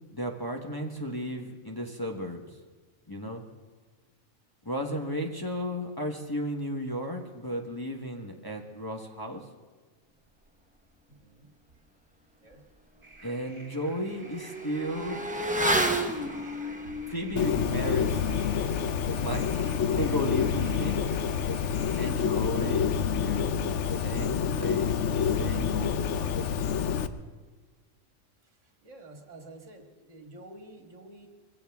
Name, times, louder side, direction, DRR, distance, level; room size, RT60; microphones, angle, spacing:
voice 1, 0.1-2.4 3.1-3.4 4.6-9.5 13.2-15.3 16.1-16.5 17.1-18.2 19.1-19.5 20.0-21.1 22.0-26.6, equal, 20° left, 1 dB, 1.2 m, -34 dB
voice 2, 11.1-11.5 12.4-12.6 16.8-17.0 28.8-31.3, right 2 dB, 70° right, 3 dB, 2.1 m, -49 dB
Motorcycle / Accelerating revving vroom, 12.5-12.6 13.0-23.0 23.3-23.4, right 1 dB, 5° right, 0.9 m, -34 dB
sound 1, 13.0-22.1, right 1 dB, 25° right, 1.7 m, -51 dB
Bird, 17.4-27.1, left 7 dB, 65° left, 1.0 m, -28 dB
23.0 x 16.5 x 3.5 m, 1.4 s
omnidirectional pair, 1.3 m